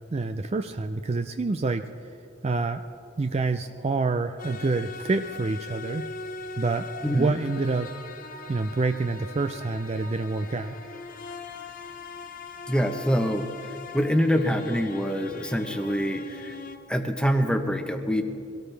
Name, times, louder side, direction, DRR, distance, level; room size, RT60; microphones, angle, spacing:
voice 1, 0.1-1.9 2.4-2.8 3.2-6.0 6.6-7.9 8.5-10.8, right 3 dB, 30° right, 8 dB, 0.4 m, -27 dB
sound 1, 4.4-16.8, left 4 dB, 40° left, 0.8 m, -41 dB
voice 2, 7.0-7.3 12.7-13.5 13.9-16.5 16.9-18.2, equal, 5° left, 6 dB, 0.9 m, -25 dB
24.0 x 17.5 x 3.4 m, 2.6 s
head